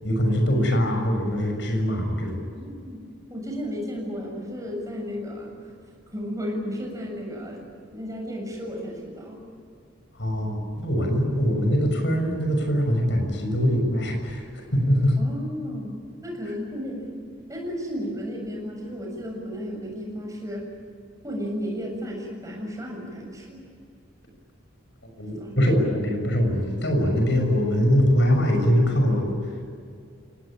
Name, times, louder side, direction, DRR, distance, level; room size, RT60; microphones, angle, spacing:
voice 1, 0.0-2.5 10.1-14.4 14.7-15.2 25.2-29.6, equal, 65° left, 4 dB, 6.6 m, -22 dB
voice 2, 2.5-3.0 3.3-5.5 6.1-7.6 7.9-9.4 15.2-17.1 17.5-20.7 21.2-23.6 25.2-25.8, equal, 15° right, 0 dB, 7.1 m, -33 dB
29.0 x 19.0 x 8.9 m, 2.3 s
head